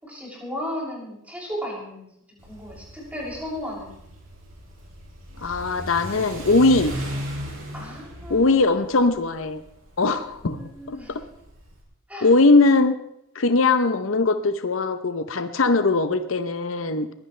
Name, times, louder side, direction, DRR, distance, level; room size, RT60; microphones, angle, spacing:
voice 1, 0.0-4.0 7.7-8.9 10.5-11.1 12.1-12.3, equal, 5° right, -4 dB, 6.8 m, -35 dB
Car / Accelerating revving vroom, 2.4-11.8, right 1 dB, 75° right, 5.6 m, -37 dB
voice 2, 5.4-6.9 8.3-9.6 10.0-10.7 11.1-11.2 12.2-12.9 13.3-17.1, left 3 dB, 70° left, 10 dB, 0.8 m, -20 dB
22.0 x 16.0 x 3.3 m, 0.80 s
head